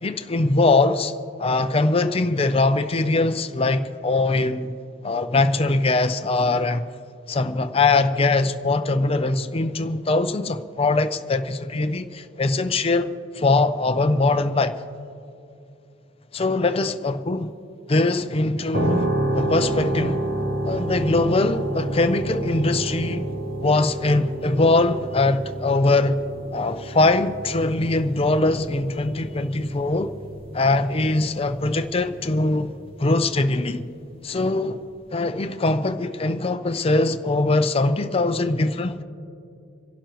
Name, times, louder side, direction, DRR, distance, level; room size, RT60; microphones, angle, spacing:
voice 1, 0.0-1.1 1.4-4.7 5.0-6.9 7.3-14.8 16.3-17.5 17.9-20.2 20.6-23.3 23.6-26.2 26.5-30.1 30.5-32.7 33.0-33.9 34.2-34.8 35.1-39.0, left 2 dB, 30° left, 0.6 m, -22 dB
sound 1, 18.7-33.4, right 1 dB, 50° right, 1.1 m, -30 dB
27.5 x 11.5 x 3.1 m
head